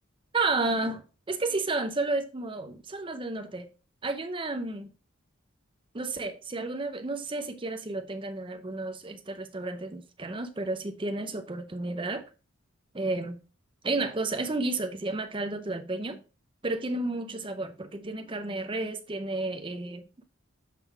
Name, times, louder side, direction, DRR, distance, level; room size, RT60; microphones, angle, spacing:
voice 1, 0.3-3.7 4.0-4.9 5.9-12.2 12.9-13.4 13.8-16.2 16.6-20.2, right 2 dB, 25° right, 0.6 m, -32 dB
7.3 x 3.9 x 4.5 m
head